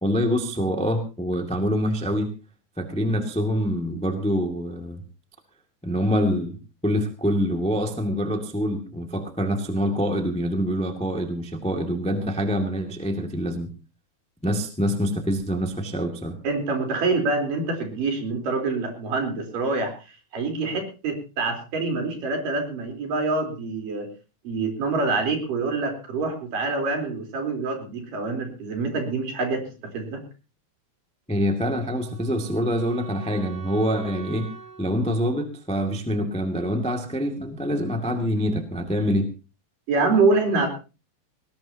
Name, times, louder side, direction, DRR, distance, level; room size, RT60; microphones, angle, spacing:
voice 1, 0.0-2.3 2.8-5.0 5.8-6.6 6.8-13.7 14.4-16.4 31.3-34.5 34.8-39.3, equal, 5° left, 4 dB, 0.9 m, -25 dB
voice 2, 16.4-19.9 20.3-24.1 24.4-29.7 29.9-30.3 39.9-40.7, right 3 dB, 60° right, 3 dB, 5.4 m, -25 dB
Wind instrument woodwind instrument, 31.3-36.4, right 5 dB, 85° right, 4.7 m, -45 dB
20.0 x 18.5 x 2.9 m, 0.32 s
omnidirectional pair, 4.3 m